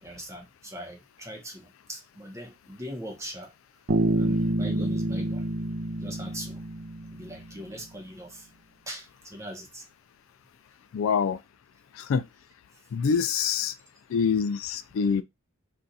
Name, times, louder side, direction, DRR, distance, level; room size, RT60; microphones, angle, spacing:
voice 1, 0.0-3.5 4.1-5.5 6.0-6.6 7.1-8.5 8.9-9.8, equal, 15° right, 0.8 m, -40 dB
Bass guitar, 3.9-7.7, right 1 dB, 45° right, 0.5 m, -28 dB
voice 2, 10.9-11.4 12.1-12.2 12.9-13.7 14.1-15.2, left 6 dB, 70° left, 0.3 m, -25 dB
2.7 x 2.3 x 3.9 m
head